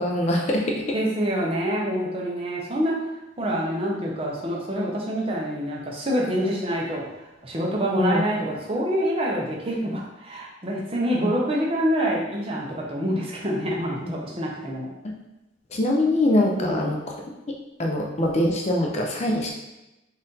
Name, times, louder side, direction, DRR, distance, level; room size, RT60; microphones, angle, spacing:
voice 1, 0.0-0.8 8.0-8.2 11.1-11.3 14.0-14.1 15.0-15.1 15.7-17.1 17.8-19.5, left 1 dB, 35° left, 0 dB, 0.4 m, -23 dB
voice 2, 0.9-2.9 3.4-14.9 16.6-17.0, equal, 30° right, -3 dB, 0.7 m, -26 dB
4.1 x 2.5 x 3.8 m, 0.96 s
head